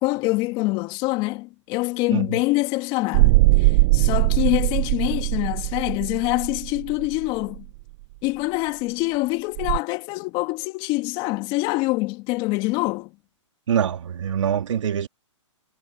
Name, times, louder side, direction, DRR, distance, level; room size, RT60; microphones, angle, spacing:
voice 1, 0.0-7.7 8.2-13.1, left 22 dB, 30° left, 2.1 m, -25 dB
Dark Suspense, 3.1-7.6 9.6-9.8, right 23 dB, 35° right, 0.5 m, -20 dB
voice 2, 13.7-15.1, right 8 dB, 70° right, 3.1 m, -24 dB
hypercardioid pair, 140°, 16 cm